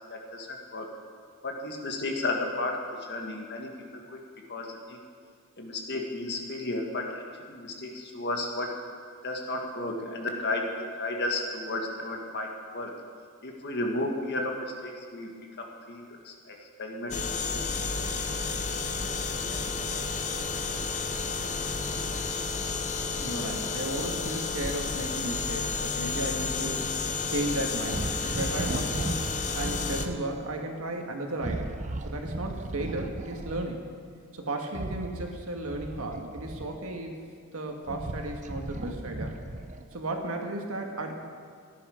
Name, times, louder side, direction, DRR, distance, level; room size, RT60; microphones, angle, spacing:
voice 1, 0.1-0.9 1.4-2.8 3.1-4.2 4.5-5.0 5.6-7.1 7.5-8.8 9.2-12.9 13.4-15.3 15.6-17.7, left 2 dB, 55° left, 1 dB, 1.8 m, -33 dB
sound 1, 17.1-30.1, left 4 dB, 35° left, 0.8 m, -31 dB
voice 2, 23.2-31.7 32.0-33.8 34.3-37.1 37.5-39.3 39.9-41.1, right 1 dB, 85° right, 2 dB, 1.7 m, -34 dB
sound 2, 27.9-30.2 31.3-33.7 34.7-37.0 37.6-39.9, right 2 dB, 35° right, 0.7 m, -36 dB
17.0 x 10.5 x 5.1 m, 2.1 s
head